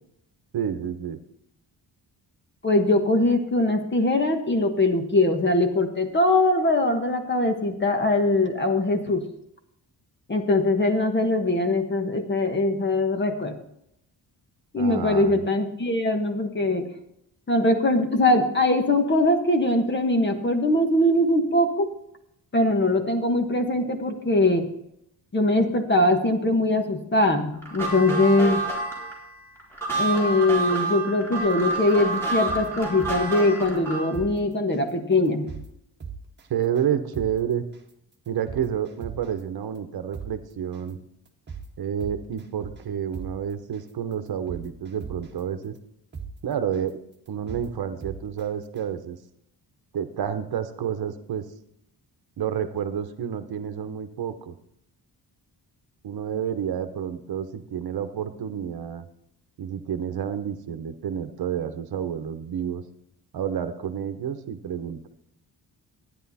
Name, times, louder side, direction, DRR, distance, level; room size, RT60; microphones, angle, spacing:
voice 1, 0.5-1.2 14.8-15.4 36.5-37.7 38.3-41.0 41.8-45.7 46.4-47.0 47.3-49.2 49.9-51.5 52.4-54.5 56.0-59.0 59.6-62.8 63.3-65.1, right 9 dB, 65° right, 9 dB, 1.1 m, -29 dB
voice 2, 2.6-9.3 10.3-13.6 14.7-16.9 17.5-21.9 22.5-24.7 25.3-28.6 29.9-35.5, left 2 dB, 25° left, 5 dB, 1.4 m, -22 dB
sound 1, 27.6-34.2, right 3 dB, 5° left, 4.0 m, -29 dB
sound 2, 31.7-31.9 32.3-33.4 33.8-33.9 34.1-34.3 34.7-34.9 35.3-35.7 36.0-36.4 36.8-36.9 37.1-37.3 37.7-37.9 38.3-39.4 39.8-39.9 40.1-40.3 40.7-40.9 41.3-41.6 42.0-42.9 43.1-43.3 43.7-43.9 44.3-45.4 45.8-45.9 46.1-46.3 46.7-46.9 47.3-47.7 48.0-48.4 48.8-48.9, right 6 dB, 25° right, 1.5 m, -37 dB
13.5 x 10.0 x 4.2 m, 0.75 s
wide cardioid pair, 160°, 40 cm